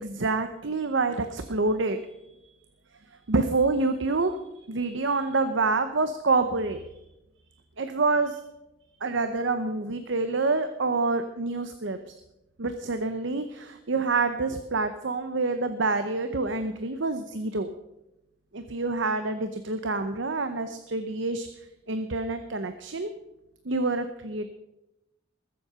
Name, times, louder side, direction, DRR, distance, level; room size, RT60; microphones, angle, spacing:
voice 1, 0.0-2.0 3.3-4.4 4.7-6.8 7.8-8.4 9.0-12.0 12.6-17.7 18.5-21.5 21.9-23.1 23.6-24.5, right 3 dB, 65° right, 9 dB, 0.8 m, -27 dB
20.5 x 7.7 x 5.7 m, 0.92 s
head